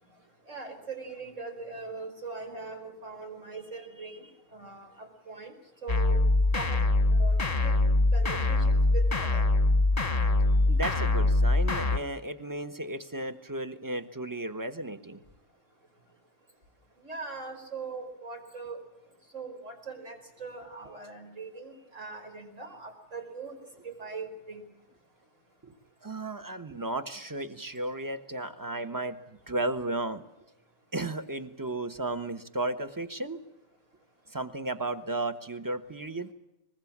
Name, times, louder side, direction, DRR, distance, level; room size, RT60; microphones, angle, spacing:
voice 1, 0.5-5.5 5.8-6.2 6.5-6.8 7.1-9.5 17.0-18.8 19.3-23.6 23.8-24.6, right 4 dB, 70° right, 4 dB, 5.1 m, -41 dB
sound 1, 5.9-12.0, left 2 dB, 30° left, 1.2 m, -23 dB
voice 2, 10.7-15.2 25.6-25.7 26.0-29.2 29.5-30.2 30.9-33.4 34.3-36.3, right 2 dB, 15° right, 10 dB, 1.2 m, -34 dB
24.0 x 21.0 x 7.4 m, 0.91 s
omnidirectional pair, 1.3 m